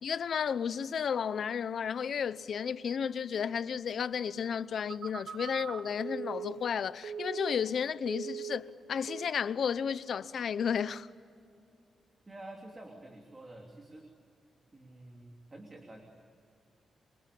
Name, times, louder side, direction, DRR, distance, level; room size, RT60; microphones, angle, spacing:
voice 1, 0.0-11.1, left 7 dB, 55° left, 0.8 m, -33 dB
Telephone, 4.8-7.8 8.1-8.7 9.1-9.4, right 7 dB, 80° right, 1.6 m, -41 dB
voice 2, 12.3-14.1 14.7-16.1, right 1 dB, 20° right, 3.0 m, -49 dB
27.5 x 25.5 x 8.5 m
wide cardioid pair, 140°, 0 cm